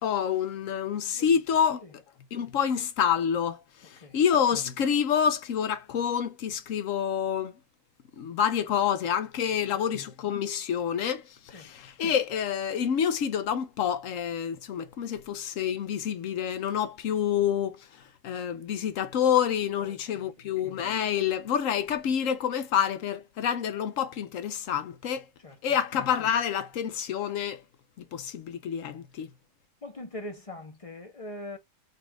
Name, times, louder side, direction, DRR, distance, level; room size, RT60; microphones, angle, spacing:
voice 1, 0.0-1.8 2.3-7.5 8.2-17.9 18.2-25.2 25.6-27.6 28.0-29.3, left 8 dB, 65° left, 1.0 m, -28 dB
voice 2, 9.5-9.8 11.5-11.7 19.8-20.5 25.4-25.8 29.8-31.6, left 1 dB, 30° left, 0.7 m, -43 dB
4.1 x 2.5 x 4.4 m
omnidirectional pair, 1.6 m